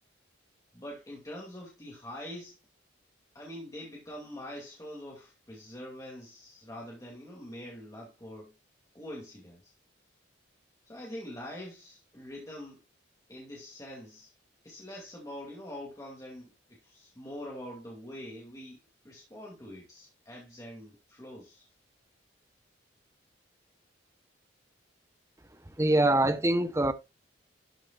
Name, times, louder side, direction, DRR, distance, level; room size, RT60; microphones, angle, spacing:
voice 1, 0.7-2.6 3.3-8.5 8.9-9.7 10.9-12.8 13.3-14.3 14.6-18.8 19.0-21.7, left 1 dB, 15° left, 2.4 m, -44 dB
voice 2, 25.8-26.9, right 1 dB, 15° right, 0.8 m, -24 dB
12.5 x 7.1 x 2.4 m
head